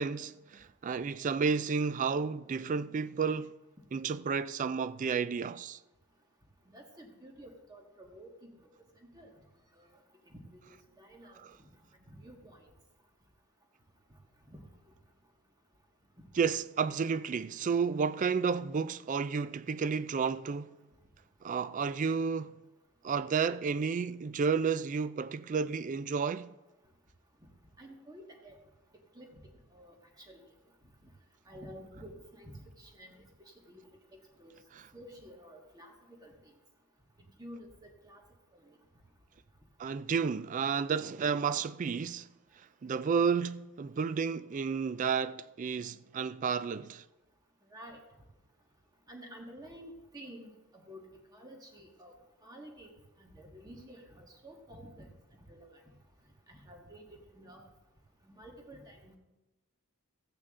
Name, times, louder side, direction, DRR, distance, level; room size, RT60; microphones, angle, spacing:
voice 1, 0.0-3.5 3.9-5.8 11.4-11.5 16.3-20.8 21.4-22.6 23.0-26.5 34.8-34.9 39.8-42.3 42.8-47.0, right 5 dB, 35° right, 0.3 m, -31 dB
voice 2, 6.7-8.5 9.1-9.3 9.7-9.9 10.2-11.4 12.1-12.6 14.5-14.6 27.8-28.6 29.1-29.3 29.7-30.5 31.5-33.8 34.1-34.5 34.9-35.9 36.2-36.5 37.4-37.7 38.0-38.2 38.5-38.6 47.7-48.0 49.1-51.0 51.3-52.1 52.4-52.9 53.2-55.7 56.5-57.6 58.2-59.1, equal, 15° right, 1.6 m, -51 dB
14.0 x 8.7 x 3.7 m
head